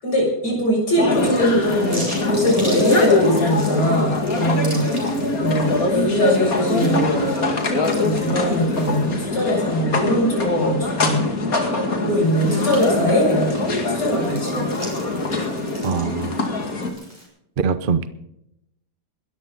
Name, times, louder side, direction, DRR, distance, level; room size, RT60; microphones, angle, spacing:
voice 1, 0.0-7.3 7.9-11.3 11.9-13.5 13.9-14.6, equal, 80° left, -1 dB, 7.7 m, -21 dB
sound 1, 1.0-16.9, left 2 dB, 60° left, 2.8 m, -23 dB
sound 2, 1.1-9.7 10.2-10.3 12.0-17.3, equal, 15° right, 6.3 m, -39 dB
voice 2, 15.8-16.3 17.6-18.1, right 5 dB, 45° right, 13 dB, 0.7 m, -22 dB
22.0 x 13.5 x 4.0 m, 0.81 s
omnidirectional pair, 1.8 m